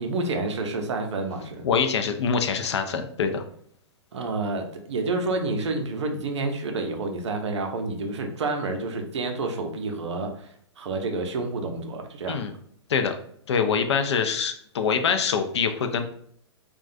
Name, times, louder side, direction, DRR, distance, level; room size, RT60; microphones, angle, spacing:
voice 1, 0.0-1.7 4.1-12.4, right 3 dB, 75° right, 4 dB, 0.5 m, -29 dB
voice 2, 1.6-3.4 12.3-12.5 12.9-13.2 13.5-16.1, left 6 dB, 70° left, 7 dB, 0.4 m, -24 dB
2.4 x 2.2 x 2.5 m, 0.64 s
hypercardioid pair, 115°, 15 cm